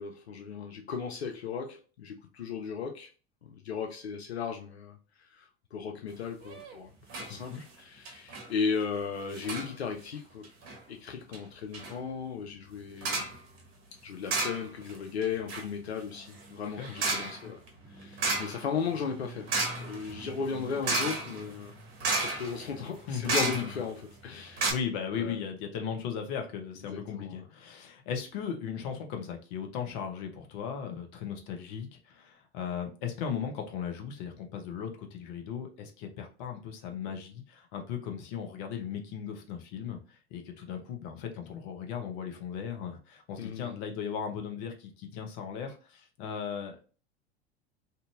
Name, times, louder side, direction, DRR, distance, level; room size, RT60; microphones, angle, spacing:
voice 1, 0.0-3.1 3.4-5.0 5.3-10.5 10.9-13.3 14.0-17.6 17.9-19.5 19.8-21.7 22.2-24.7 25.1-25.4 26.9-27.4 43.4-43.8, left 6 dB, 85° left, 0.5 m, -36 dB
sound 1, 6.4-6.8 7.1-7.3 7.6-7.7 8.1-8.5 9.3-9.7 10.4-10.8 11.3-11.4 11.7-12.0 13.0-13.4 14.3-15.0 15.2-24.0 24.3-24.4 24.6-24.7, right 3 dB, 45° right, 1.0 m, -33 dB
voice 2, 7.3-7.6 16.8-16.9 17.4-17.5 23.1-23.7 24.7-40.0 40.3-46.9, left 7 dB, 50° left, 0.8 m, -37 dB
2.7 x 2.6 x 2.2 m
figure-of-eight pair, 80°, 31 cm